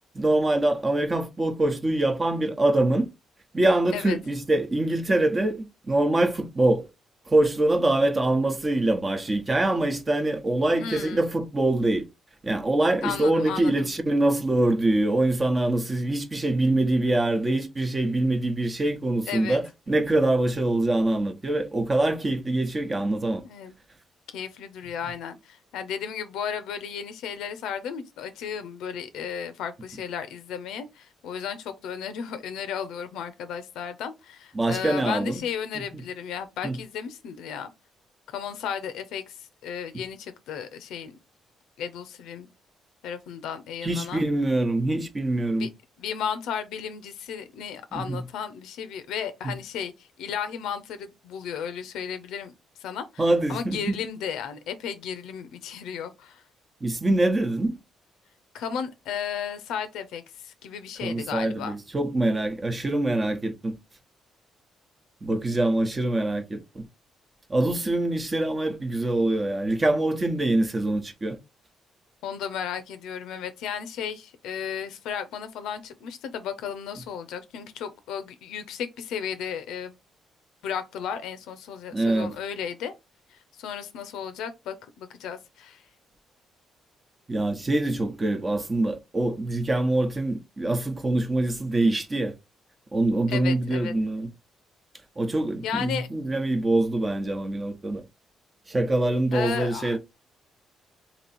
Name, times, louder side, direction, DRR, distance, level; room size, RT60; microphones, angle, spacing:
voice 1, 0.1-3.1 3.5-6.9 7.3-12.0 12.4-23.4 34.5-35.4 36.6-36.8 43.8-45.7 47.9-48.2 49.4-49.5 53.2-54.0 56.8-57.8 61.0-63.8 65.2-66.9 67.5-71.4 81.9-82.3 87.3-92.3 92.9-94.3 95.2-98.0 98.7-100.0, right 2 dB, 25° right, 0.9 m, -24 dB
voice 2, 10.7-11.3 13.0-13.9 19.3-19.6 23.4-23.8 24.3-37.7 38.3-41.2 41.8-42.5 43.0-44.3 45.5-45.7 46.0-52.5 52.8-56.4 58.5-61.7 72.2-79.9 80.6-82.9 83.3-85.8 93.3-93.9 95.6-96.1 99.3-100.0, left 8 dB, 85° left, 0.6 m, -34 dB
3.0 x 2.8 x 4.1 m
cardioid pair, 90°, 0 cm